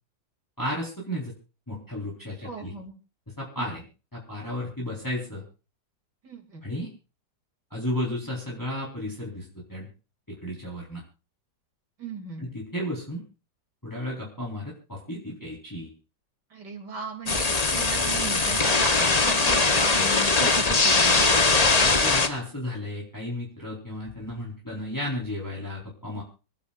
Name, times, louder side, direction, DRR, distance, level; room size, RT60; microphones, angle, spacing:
voice 1, 0.6-1.3 1.7-2.7 3.4-3.8 4.1-5.4 6.6-6.9 7.7-9.9 10.4-11.0 12.4-13.2 13.8-15.9 21.8-26.2, left 1 dB, 10° left, -4 dB, 4.6 m, -33 dB
voice 2, 2.4-3.0 3.6-3.7 6.2-6.6 12.0-12.5 16.5-21.5, right 4 dB, 65° right, 2 dB, 3.6 m, -37 dB
sound 1, 17.3-22.3, left 3 dB, 25° left, 1.0 m, -21 dB
28.0 x 11.5 x 2.6 m, 0.34 s
omnidirectional pair, 2.0 m